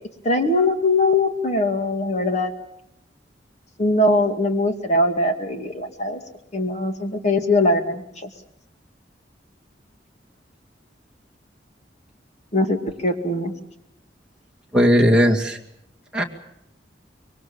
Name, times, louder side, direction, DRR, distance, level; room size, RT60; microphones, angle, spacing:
voice 1, 0.2-2.5 3.8-6.2 6.5-8.3 12.5-13.5, left 2 dB, 40° left, 5 dB, 2.3 m, -21 dB
voice 2, 14.7-15.6 16.1-16.2, equal, 5° right, -1 dB, 2.3 m, -17 dB
25.0 x 23.0 x 7.2 m, 0.77 s
head